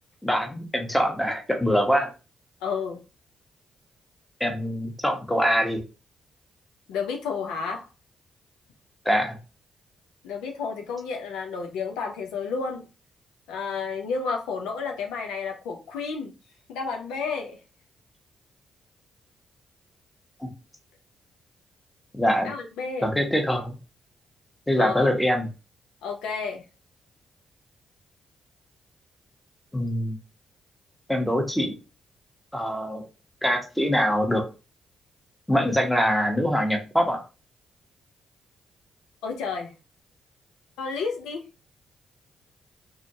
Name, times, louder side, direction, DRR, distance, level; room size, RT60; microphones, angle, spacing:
voice 1, 0.2-2.1 4.4-5.8 9.0-9.4 20.4-20.5 22.1-22.5 23.0-23.7 24.7-25.5 29.7-30.2 31.1-31.7 32.5-33.0 33.4-34.4 35.5-37.2, equal, 10° left, 1.0 m, -24 dB
voice 2, 2.6-3.0 6.9-7.9 10.2-12.9 13.5-16.3 16.7-17.6 22.4-23.1 24.8-25.1 26.0-26.6 39.2-39.7 40.8-41.4, left 5 dB, 75° left, 0.4 m, -31 dB
2.4 x 2.3 x 2.7 m
hypercardioid pair, 40°, 0 cm